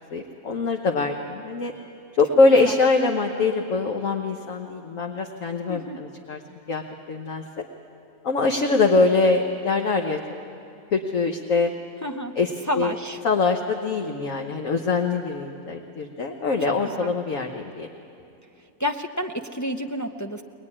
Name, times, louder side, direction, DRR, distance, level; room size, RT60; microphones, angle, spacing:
voice 1, 0.1-1.7 2.1-6.4 6.7-6.8 7.1-7.6 8.2-10.2 10.9-11.7 12.3-12.9 13.2-17.9, left 3 dB, 60° left, 3 dB, 1.4 m, -23 dB
voice 2, 5.7-6.0 12.0-12.3 12.7-13.2 17.0-17.1 18.8-20.4, equal, 30° left, 3 dB, 0.3 m, -29 dB
22.0 x 20.0 x 9.8 m, 2.7 s
omnidirectional pair, 1.6 m